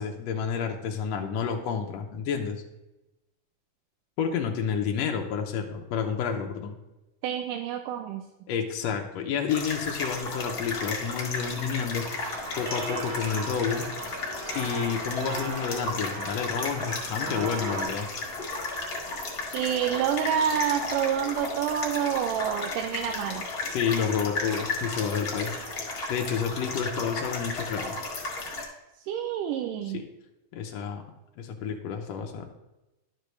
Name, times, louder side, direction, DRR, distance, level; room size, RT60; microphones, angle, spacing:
voice 1, 0.0-2.6 4.2-6.8 8.5-12.3 12.6-13.9 14.5-18.1 23.7-28.0 29.9-30.1 30.5-31.0 31.4-32.5, left 7 dB, 75° left, 2 dB, 1.6 m, -30 dB
voice 2, 7.2-8.2 19.5-23.5 29.1-30.0, right 9 dB, 90° right, 4 dB, 2.2 m, -28 dB
sound 1, 9.5-28.6, left 3 dB, 45° left, 1.2 m, -34 dB
sound 2, 12.2-17.8, right 2 dB, 65° right, 2.1 m, -38 dB
11.0 x 6.6 x 3.2 m, 0.98 s
omnidirectional pair, 3.7 m